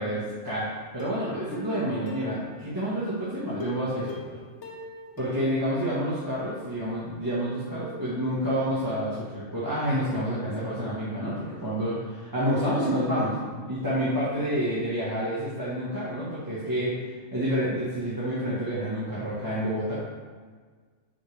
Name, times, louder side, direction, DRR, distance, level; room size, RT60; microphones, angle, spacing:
voice 1, 0.0-4.3 5.2-17.0 17.3-19.9, equal, 15° right, -11 dB, 1.6 m, -29 dB
Plucked string instrument, 1.0-3.0 3.6-6.4 6.7-6.8 7.2-7.3, equal, 70° left, 1.3 m, -41 dB
7.7 x 5.7 x 3.4 m, 1.5 s
omnidirectional pair, 1.3 m